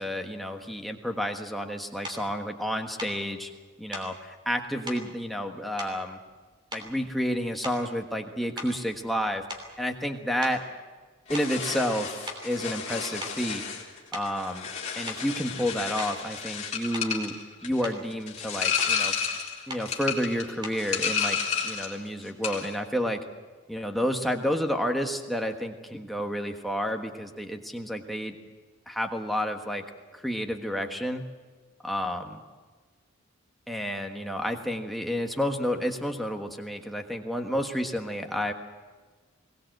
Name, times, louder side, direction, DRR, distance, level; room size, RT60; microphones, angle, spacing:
voice 1, 0.0-3.5 3.8-6.2 6.7-9.4 9.8-10.6 11.3-13.6 14.1-14.7 15.0-17.3 17.6-19.1 19.7-21.4 21.6-23.2 23.7-28.4 28.9-29.8 30.1-31.2 31.8-32.4 33.7-38.5, equal, ahead, 3 dB, 1.4 m, -30 dB
sound 1, 2.0-2.3 3.0-3.2 3.9-4.2 4.9-5.1 5.8-6.4 6.7-7.1 7.6-8.0 8.6-10.1 10.4-10.6 11.3-11.6 12.3-12.5 13.0-13.5 14.1-14.3 15.1-15.3 16.0-16.2 16.9-17.2 17.6-18.0 18.8-19.0 19.7-19.9 20.6-20.9, equal, 20° right, 3.1 m, -40 dB
sound 2, 11.3-22.0 22.2-22.7, left 6 dB, 30° left, 3.2 m, -31 dB
22.0 x 18.5 x 7.9 m, 1.4 s
head